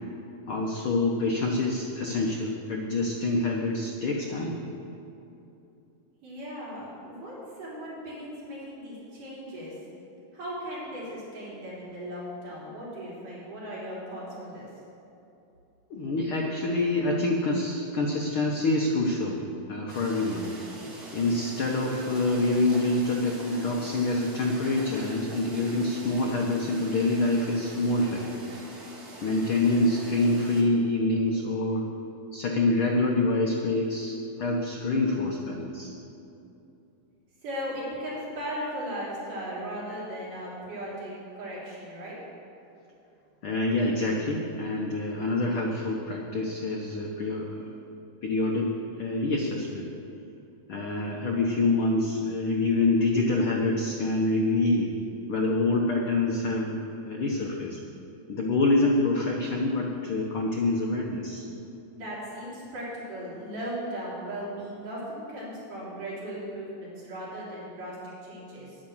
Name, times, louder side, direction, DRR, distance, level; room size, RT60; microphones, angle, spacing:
voice 1, 0.5-4.6 15.9-19.4 19.7-20.5 21.1-28.4 29.2-31.9 32.3-35.9 43.4-47.7 48.2-48.7 49.0-49.9 50.7-54.9 55.3-56.7 57.0-57.8 58.3-61.4, left 2 dB, 75° left, -1 dB, 1.2 m, -26 dB
voice 2, 6.2-9.8 10.3-14.7 37.4-42.2 61.9-68.0 68.2-68.8, equal, 75° right, -7 dB, 4.9 m, -37 dB
sound 1, 19.9-30.6, right 2 dB, 35° right, 1.7 m, -44 dB
10.0 x 9.4 x 7.2 m, 2.8 s
omnidirectional pair, 3.7 m